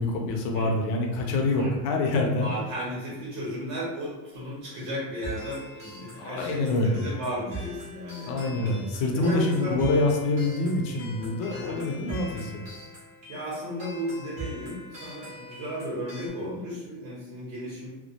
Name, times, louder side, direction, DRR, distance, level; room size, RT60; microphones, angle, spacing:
voice 1, 0.0-2.5 6.2-7.0 8.3-12.5, left 2 dB, 60° left, 1 dB, 0.6 m, -26 dB
voice 2, 2.4-8.7 9.1-9.8 11.5-11.8 13.3-17.9, equal, 45° right, -5 dB, 0.7 m, -34 dB
sound 1, 5.2-16.3, right 1 dB, 15° right, 0.4 m, -42 dB
2.2 x 2.1 x 2.8 m, 1.1 s
cardioid pair, 165°, 48 cm